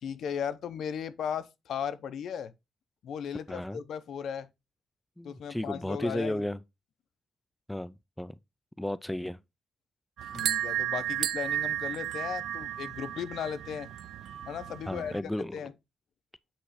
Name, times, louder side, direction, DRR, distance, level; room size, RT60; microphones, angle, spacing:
voice 1, 0.0-2.5 3.0-4.5 5.2-6.4 10.3-13.9 14.5-15.7, left 8 dB, 70° left, 0.7 m, -36 dB
voice 2, 3.5-3.8 5.2-6.6 7.7-8.4 8.8-9.4 14.9-15.6, left 1 dB, 5° left, 0.3 m, -34 dB
wind chimes, 10.2-15.2, right 11 dB, 75° right, 0.5 m, -33 dB
8.4 x 3.2 x 5.5 m
wide cardioid pair, 145°, 0 cm